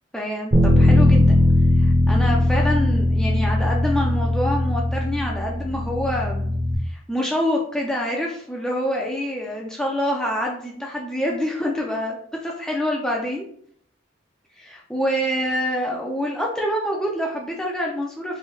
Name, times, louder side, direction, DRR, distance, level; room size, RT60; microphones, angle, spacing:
voice 1, 0.1-1.4 1.8-6.5 6.8-12.2 12.4-13.5 14.6-18.4, equal, 5° left, -2 dB, 0.3 m, -26 dB
Bass guitar, 0.5-6.8, left 1 dB, 35° right, 0.6 m, -19 dB
3.2 x 2.6 x 3.3 m, 0.63 s
head